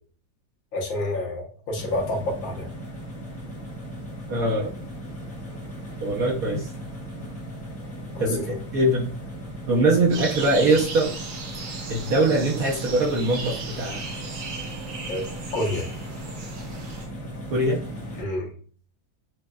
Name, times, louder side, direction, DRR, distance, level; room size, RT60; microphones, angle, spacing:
voice 1, 0.7-2.7 8.2-8.3 15.1-15.2 15.5-15.8 18.2-18.5, left 1 dB, 80° left, -2 dB, 1.8 m, -28 dB
sound 1, 1.7-18.2, equal, 20° left, 0.4 m, -37 dB
voice 2, 4.3-4.7 6.0-6.7 8.2-9.1 9.7-11.1 11.9-14.0 17.5-17.8, right 2 dB, 65° right, -2 dB, 0.9 m, -22 dB
sound 2, 10.1-17.1, right 4 dB, 85° right, 1.8 m, -37 dB
6.1 x 2.2 x 2.3 m, 0.43 s
omnidirectional pair, 2.1 m